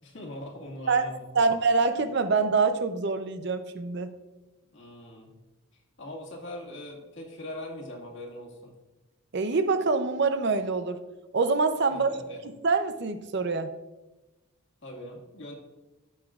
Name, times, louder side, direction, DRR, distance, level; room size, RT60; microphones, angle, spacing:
voice 1, 0.0-1.5 4.7-5.3 5.7-8.7 11.9-12.4 14.8-15.5, left 1 dB, 60° left, 0 dB, 2.0 m, -41 dB
voice 2, 0.9-4.1 9.3-11.0 11.3-12.1 12.6-13.7, right 4 dB, 55° right, 9 dB, 0.6 m, -25 dB
15.0 x 6.0 x 2.4 m, 1.1 s
head